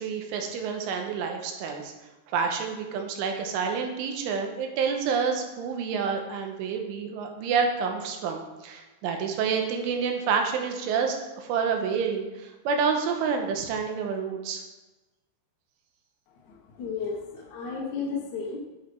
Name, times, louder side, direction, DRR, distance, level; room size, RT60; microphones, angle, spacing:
voice 1, 0.0-1.9 2.3-14.6, right 6 dB, 90° right, 3 dB, 3.5 m, -28 dB
voice 2, 16.4-18.6, left 5 dB, 65° left, -2 dB, 1.9 m, -33 dB
10.0 x 8.6 x 3.4 m, 1.1 s
omnidirectional pair, 5.5 m